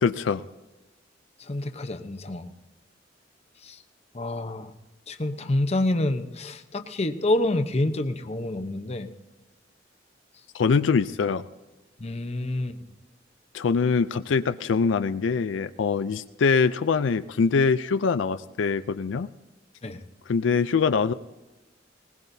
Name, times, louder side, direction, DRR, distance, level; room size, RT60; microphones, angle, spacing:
voice 1, 0.0-0.4 10.5-11.5 13.5-19.3 20.3-21.1, left 5 dB, 80° left, 11 dB, 0.4 m, -23 dB
voice 2, 1.5-2.5 3.6-3.8 4.1-4.7 5.1-9.1 12.0-12.8 19.8-20.0, left 1 dB, 35° left, 8 dB, 0.8 m, -27 dB
20.0 x 19.5 x 2.7 m, 1.1 s
head